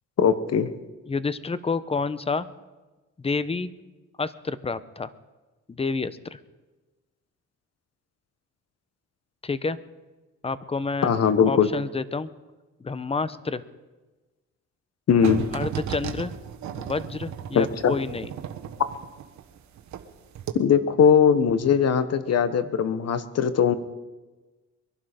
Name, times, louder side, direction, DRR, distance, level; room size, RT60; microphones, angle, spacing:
voice 1, 0.2-0.7 11.0-11.7 15.1-15.5 17.5-17.9 20.5-23.7, left 7 dB, 55° left, 12 dB, 1.1 m, -20 dB
voice 2, 1.1-2.5 3.2-3.7 4.2-5.1 5.7-6.4 9.4-9.8 10.4-11.1 11.5-12.3 12.8-13.6 15.5-16.3 16.8-18.3, left 4 dB, 20° left, 15 dB, 0.8 m, -29 dB
sound 1, 15.2-20.1 20.4-20.5, right 9 dB, 70° right, 1.4 m, -34 dB
22.5 x 11.5 x 5.1 m, 1.2 s
cardioid pair, 90°, 30 cm